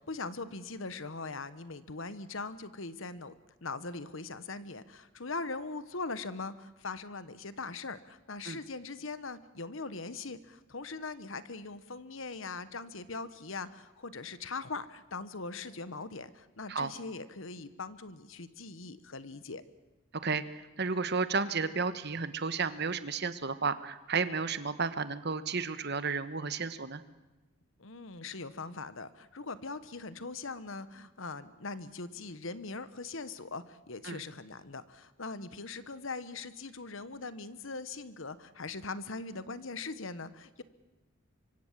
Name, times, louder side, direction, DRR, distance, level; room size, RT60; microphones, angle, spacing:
voice 1, 0.0-3.3 3.6-19.6 27.8-40.6, left 3 dB, 65° left, 14 dB, 1.3 m, -41 dB
voice 2, 20.2-27.0 34.0-34.2, right 4 dB, 50° right, 12 dB, 1.3 m, -32 dB
25.0 x 24.5 x 7.5 m, 1.1 s
head